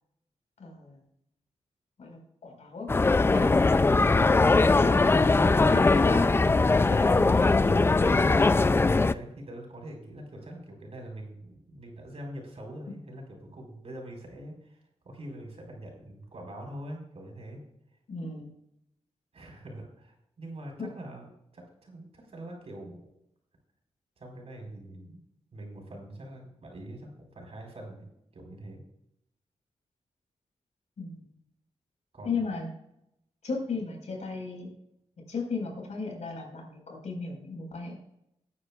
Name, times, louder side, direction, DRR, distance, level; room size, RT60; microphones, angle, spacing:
voice 1, 0.6-1.0 2.0-8.5 18.1-18.5 20.8-20.9 31.0-31.3 32.2-32.7 33.4-34.7 35.3-38.0, left 3 dB, 75° left, 0 dB, 4.9 m, -36 dB
sound 1, 2.9-9.1, left 3 dB, 20° left, 0.3 m, -21 dB
voice 2, 3.7-4.1 8.6-17.6 19.3-21.3 21.5-23.0 24.2-25.2 25.5-28.0 28.3-28.8 32.1-32.4, right 1 dB, 60° right, 1 dB, 4.7 m, -44 dB
20.0 x 9.8 x 2.4 m, 0.80 s
wide cardioid pair, 115°, 12 cm